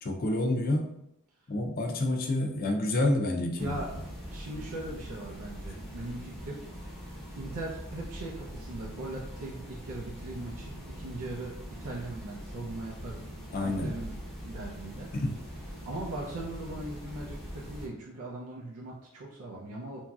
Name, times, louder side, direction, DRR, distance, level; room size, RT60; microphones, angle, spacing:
voice 1, 0.0-1.0 1.5-3.8 13.5-13.9 15.1-15.3, left 1 dB, 40° left, 2 dB, 0.4 m, -28 dB
voice 2, 3.5-3.9 4.3-6.6 7.0-13.3 13.6-14.2 14.4-15.1 15.9-20.0, right 2 dB, 85° right, -4 dB, 0.5 m, -40 dB
sound 1, 3.6-17.9, equal, ahead, 0.6 m, -42 dB
3.0 x 2.6 x 2.3 m, 0.83 s
head